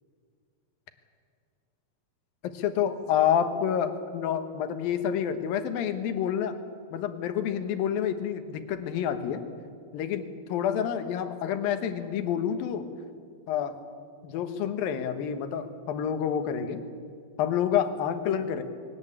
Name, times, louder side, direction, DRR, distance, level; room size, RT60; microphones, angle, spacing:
voice 1, 2.4-6.5 6.9-9.4 9.9-12.9 13.5-13.8 14.2-16.8 17.4-18.6, left 9 dB, 75° left, 9 dB, 3.0 m, -28 dB
22.5 x 18.0 x 8.9 m, 2.2 s
omnidirectional pair, 4.2 m